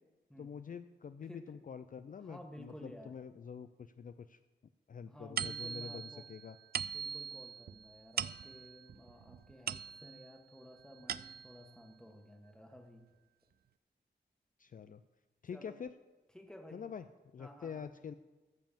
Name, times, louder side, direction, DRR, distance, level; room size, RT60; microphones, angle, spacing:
voice 1, 0.4-4.4 4.9-6.6 14.6-15.0 15.4-15.9 16.7-17.0 17.3-18.1, left 7 dB, 45° left, 11 dB, 0.4 m, -46 dB
voice 2, 2.2-3.1 5.0-6.2 6.8-13.1 15.5-15.8 16.3-16.8 17.4-17.9, equal, 5° left, 4 dB, 1.4 m, -54 dB
sound 1, 5.4-10.4 10.8-11.7, right 7 dB, 55° right, 0.4 m, -41 dB
14.0 x 5.4 x 7.4 m, 1.2 s
wide cardioid pair, 110°, 19 cm